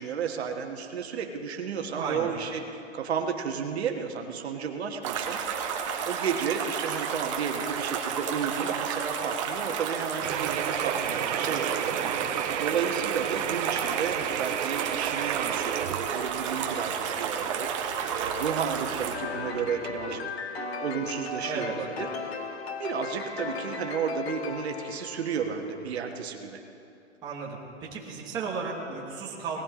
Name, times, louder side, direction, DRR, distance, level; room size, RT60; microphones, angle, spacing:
voice 1, 0.0-5.4 6.0-20.5 20.8-22.3 22.8-26.6, right 6 dB, 60° right, 3 dB, 1.4 m, -33 dB
voice 2, 1.9-2.3 11.9-12.2 21.5-21.7 27.2-29.6, right 5 dB, 10° right, -4 dB, 1.3 m, -34 dB
sound 1, 5.0-19.2, right 7 dB, 25° right, 0.9 m, -31 dB
sound 2, 10.2-20.3, right 11 dB, 80° right, 0.6 m, -35 dB
sound 3, 19.1-25.8, left 4 dB, 60° left, 1.4 m, -36 dB
18.5 x 15.0 x 3.8 m, 2.7 s
hypercardioid pair, 170°, 36 cm